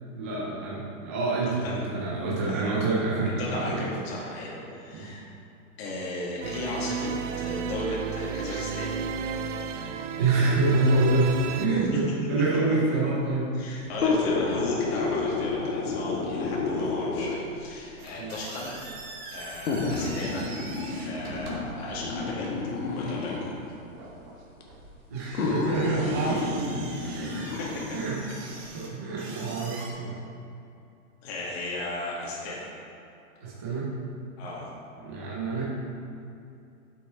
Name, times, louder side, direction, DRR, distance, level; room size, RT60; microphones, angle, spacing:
voice 1, 0.0-3.9 4.7-5.1 10.2-13.5 18.2-18.3 25.1-27.6 27.9-28.3 28.7-30.2 33.4-33.9 35.0-35.6, right 2 dB, 10° right, -6 dB, 0.3 m, -27 dB
voice 2, 3.4-5.2 5.8-9.0 11.7-12.0 13.5-18.8 19.3-20.5 21.0-22.5 22.9-23.5 27.5-27.8 31.2-32.7 34.4-34.7, left 2 dB, 45° left, -5 dB, 2.1 m, -36 dB
sound 1, 6.4-11.7, right 6 dB, 55° right, 0.6 m, -33 dB
sound 2, 13.9-17.6 18.5-18.6 19.7-23.6 24.6-24.7 25.3-28.0 28.5-28.6, left 3 dB, 75° left, 1.5 m, -30 dB
sound 3, 18.0-29.9, right 3 dB, 35° right, 1.5 m, -44 dB
8.3 x 6.4 x 4.5 m, 2.6 s
hypercardioid pair, 150°, 44 cm